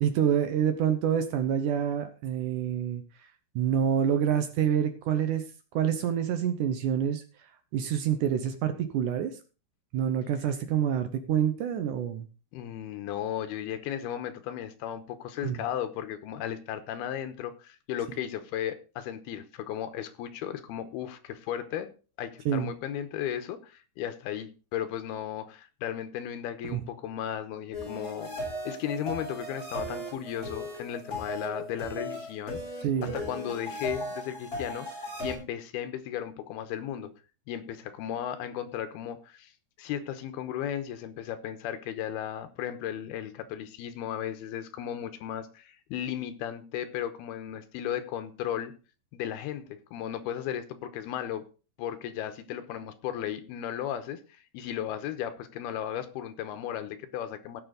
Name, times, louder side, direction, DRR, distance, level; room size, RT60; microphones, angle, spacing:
voice 1, 0.0-3.0 3.6-5.4 5.7-7.2 7.7-9.3 9.9-12.2 15.4-15.6 22.5-22.7 26.7-26.8 32.8-33.1, right 9 dB, 70° right, 9 dB, 2.0 m, -27 dB
voice 2, 12.5-21.9 22.2-28.3 28.6-37.1 37.5-39.5 39.8-48.7 49.1-51.4 51.8-57.6, left 10 dB, 80° left, 10 dB, 2.9 m, -35 dB
sound 1, 27.7-35.3, left 1 dB, 20° left, 8.1 m, -37 dB
17.5 x 7.1 x 3.9 m, 0.35 s
omnidirectional pair, 4.6 m